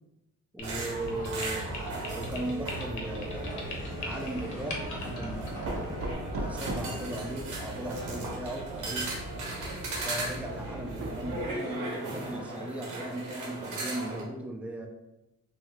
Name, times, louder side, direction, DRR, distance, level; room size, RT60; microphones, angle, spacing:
voice 1, 0.5-1.8 2.1-3.7 4.0-5.9 6.4-9.1 10.0-14.9, right 1 dB, 5° right, 1 dB, 0.5 m, -37 dB
sound 1, 0.6-6.1, left 1 dB, 75° left, 0.7 m, -40 dB
sound 2, 0.6-14.2, right 2 dB, 90° right, 0.9 m, -38 dB
sound 3, 1.0-11.5, right 1 dB, 50° right, 0.6 m, -40 dB
2.8 x 2.0 x 3.6 m, 0.94 s
cardioid pair, 90°, 30 cm